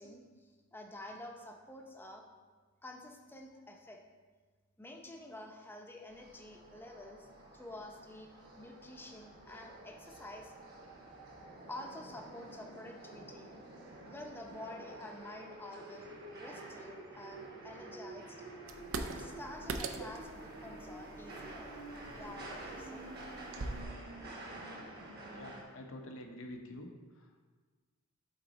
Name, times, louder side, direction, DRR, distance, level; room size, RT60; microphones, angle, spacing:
voice 1, 0.0-2.2 2.8-4.0 4.8-7.3 7.5-10.5 11.7-13.5 14.1-16.1 16.4-18.4 18.9-21.7 22.1-23.1, left 1 dB, 10° left, 1 dB, 0.6 m, -49 dB
sound 1, 6.1-25.6, right 2 dB, 50° right, 1.2 m, -49 dB
sound 2, 18.7-23.8, right 3 dB, 75° right, 0.5 m, -43 dB
voice 2, 25.3-26.9 27.1-27.4, left 1 dB, 75° left, 3 dB, 0.8 m, -47 dB
8.1 x 3.9 x 4.0 m, 1.4 s
head